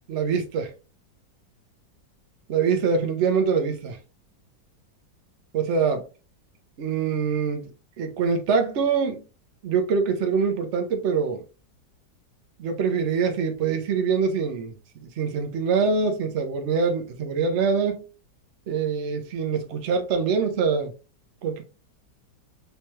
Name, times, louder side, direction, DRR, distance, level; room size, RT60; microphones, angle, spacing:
voice 1, 0.1-0.7 2.5-4.0 5.5-6.0 6.8-7.7 8.0-9.2 9.6-11.4 12.6-14.7 15.2-18.0 18.7-20.9 21.4-21.6, right 5 dB, 55° right, 0.8 m, -24 dB
3.4 x 3.0 x 3.0 m
omnidirectional pair, 1.9 m